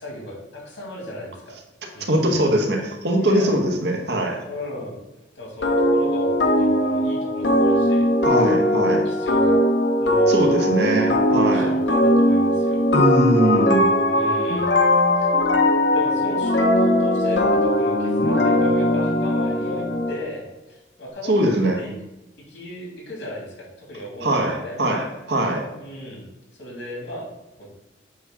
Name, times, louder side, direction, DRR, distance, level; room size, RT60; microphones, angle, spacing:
voice 1, 0.0-1.6 1.9-2.4 3.2-3.5 4.4-5.0 5.3-9.6 10.0-10.5 11.3-12.8 14.1-14.7 15.2-15.3 15.9-21.9 22.5-24.8 25.8-26.2 26.5-27.3 27.6-27.7, left 1 dB, 90° left, -2 dB, 2.7 m, -36 dB
voice 2, 2.1-4.4 8.2-9.0 10.3-11.7 12.9-14.0 21.3-21.8 24.2-25.7, right 1 dB, 65° right, 2 dB, 1.3 m, -21 dB
sound 1, 5.6-20.2, left 1 dB, 70° left, 0.9 m, -19 dB
8.1 x 2.9 x 6.0 m, 0.97 s
head